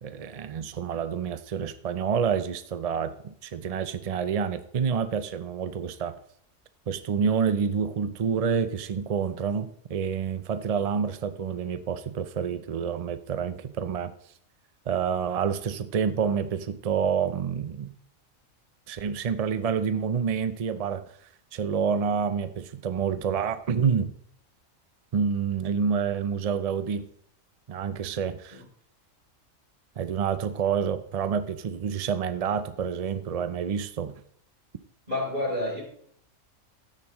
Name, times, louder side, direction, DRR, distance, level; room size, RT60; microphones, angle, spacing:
voice 1, 0.0-6.2 6.9-14.1 14.9-17.9 18.9-21.0 21.5-24.1 25.1-27.1 27.7-28.6 30.0-34.2, right 6 dB, 55° right, 12 dB, 0.4 m, -28 dB
voice 2, 35.1-35.8, left 1 dB, 40° right, -2 dB, 3.8 m, -29 dB
12.5 x 9.8 x 3.0 m, 0.64 s
omnidirectional pair, 1.3 m